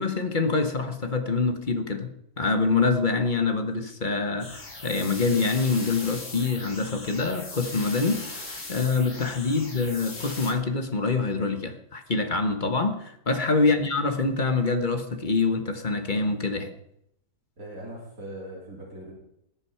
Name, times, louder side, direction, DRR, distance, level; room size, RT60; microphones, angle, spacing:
voice 1, 0.0-2.1 2.4-16.7, left 4 dB, 30° left, 6 dB, 1.3 m, -25 dB
sound 1, 4.4-10.5, left 2 dB, 50° left, 2.9 m, -39 dB
voice 2, 17.6-19.1, right 1 dB, 55° right, -4 dB, 4.1 m, -41 dB
20.5 x 8.0 x 5.8 m, 0.78 s
omnidirectional pair, 1.7 m